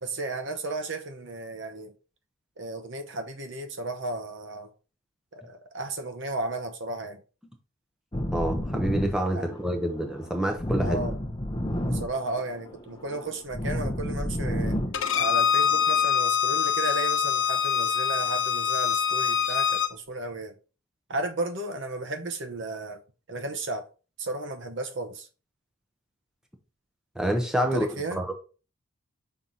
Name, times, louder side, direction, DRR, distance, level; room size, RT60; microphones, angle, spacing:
voice 1, 0.0-1.9 2.6-4.7 5.3-7.2 9.3-9.5 10.8-11.2 11.9-14.8 15.1-20.5 21.1-23.0 23.3-23.9 24.2-25.3 27.7-28.2, right 2 dB, 65° right, 1.0 m, -34 dB
sound 1, 8.1-16.2, equal, 25° left, 0.7 m, -31 dB
voice 2, 8.3-11.0 27.2-27.9 28.2-28.3, right 1 dB, 5° right, 0.9 m, -27 dB
Bowed string instrument, 14.9-19.9, left 8 dB, 70° left, 0.8 m, -24 dB
5.7 x 4.6 x 4.0 m
head